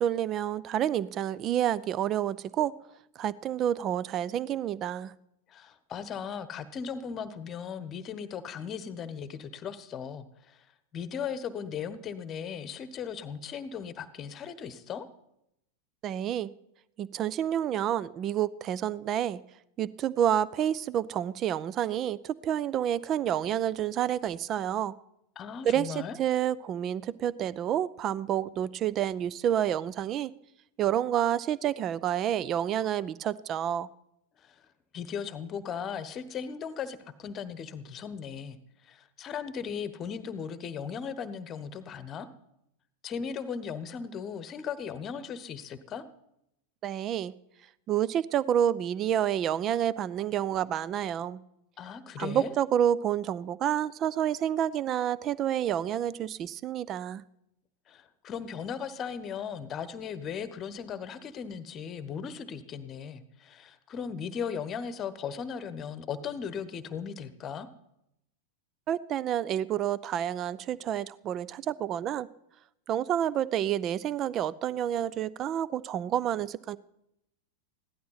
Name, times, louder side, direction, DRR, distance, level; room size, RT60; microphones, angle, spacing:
voice 1, 0.0-2.7 3.2-5.1 16.0-16.5 17.0-19.4 19.8-25.0 25.6-30.3 30.8-33.9 46.8-47.3 47.9-51.4 52.2-57.2 68.9-72.3 72.9-76.8, right 10 dB, 30° right, 0.5 m, -29 dB
voice 2, 5.5-10.6 10.9-15.1 25.3-26.2 34.4-34.5 34.9-38.6 38.9-42.3 43.0-46.0 51.8-52.5 57.9-67.7, left 7 dB, 30° left, 1.1 m, -37 dB
16.0 x 12.0 x 5.7 m
figure-of-eight pair, 90°, 0 cm